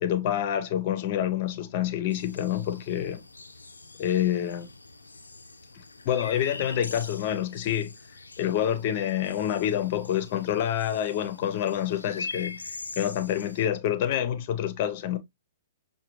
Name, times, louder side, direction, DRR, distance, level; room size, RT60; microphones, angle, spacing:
voice 1, 0.0-3.2 4.0-4.7 6.0-7.9 8.4-12.6 13.0-15.2, left 10 dB, 40° left, 0.7 m, -27 dB
sound 1, 2.1-13.7, left 3 dB, 80° left, 0.5 m, -43 dB
6.5 x 2.3 x 3.0 m
figure-of-eight pair, 115°, 0 cm